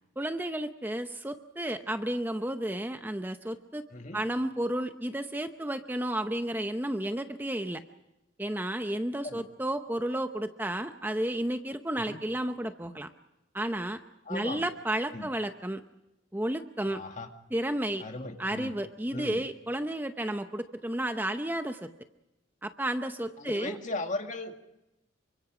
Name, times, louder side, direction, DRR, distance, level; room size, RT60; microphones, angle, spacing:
voice 1, 0.2-3.8 4.1-7.8 8.4-13.1 13.5-14.0 14.3-15.8 16.3-17.0 17.5-18.0 18.4-21.9 22.6-23.8, right 1 dB, 10° right, 8 dB, 0.8 m, -32 dB
voice 2, 14.3-14.6 15.1-15.3 16.9-17.3 18.0-18.7 19.1-19.4 23.4-24.6, left 2 dB, 40° left, 5 dB, 2.1 m, -37 dB
28.5 x 25.0 x 5.1 m, 0.93 s
head